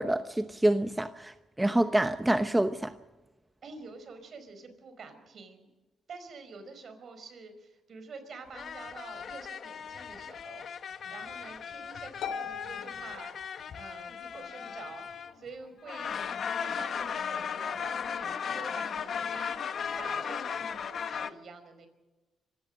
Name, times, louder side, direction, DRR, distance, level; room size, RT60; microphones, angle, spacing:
voice 1, 0.0-2.9, right 1 dB, 10° right, 0.9 m, -27 dB
voice 2, 3.6-5.7 6.1-10.7 11.1-13.3 13.8-15.0 15.3-16.3 16.6-19.6 20.0-21.9, right 4 dB, 55° right, 4.7 m, -47 dB
sound 1, 8.5-15.5 15.9-21.3, left 7 dB, 55° left, 1.2 m, -36 dB
Harp, 12.2-14.1, left 7 dB, 75° left, 3.7 m, -40 dB
26.0 x 16.0 x 6.6 m
cardioid pair, 90°, 0 cm